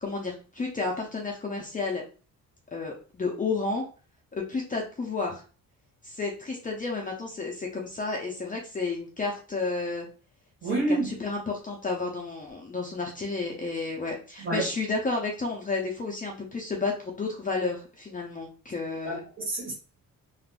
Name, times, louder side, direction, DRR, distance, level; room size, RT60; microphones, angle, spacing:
voice 1, 0.0-2.0 2.7-3.8 4.3-5.4 6.0-10.1 10.6-19.2, left 3 dB, 25° left, 0.5 m, -31 dB
voice 2, 10.6-11.1 14.4-14.7 19.0-19.7, right 2 dB, 35° right, 1.4 m, -28 dB
3.5 x 2.5 x 2.4 m
cardioid pair, 145°, 34 cm